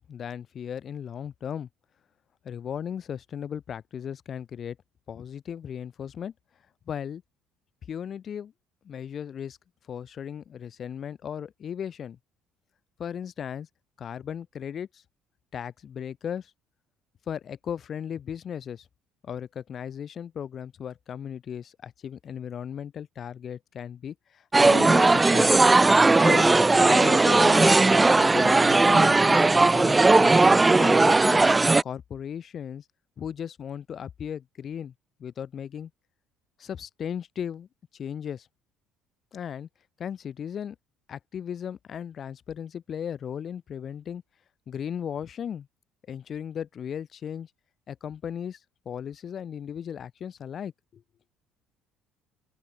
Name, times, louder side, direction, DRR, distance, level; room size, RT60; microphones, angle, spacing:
voice 1, 0.1-1.7 2.4-4.8 5.1-6.3 6.9-7.2 7.9-8.5 8.8-9.6 9.9-12.2 13.0-13.7 14.0-15.0 15.5-16.5 17.3-18.9 19.2-25.5 26.2-27.8 28.1-30.4 30.8-31.4 31.8-32.8 33.2-34.9 35.2-35.9 36.6-37.7 37.9-38.5 39.3-39.7 40.0-40.8 41.1-44.2 44.7-45.7 46.1-47.5 47.9-48.6 48.8-51.0, left 8 dB, 50° left, 1.1 m, -36 dB
sound 1, 24.5-31.8, right 3 dB, 20° right, 0.4 m, -18 dB
open air
hypercardioid pair, 70°, 0 cm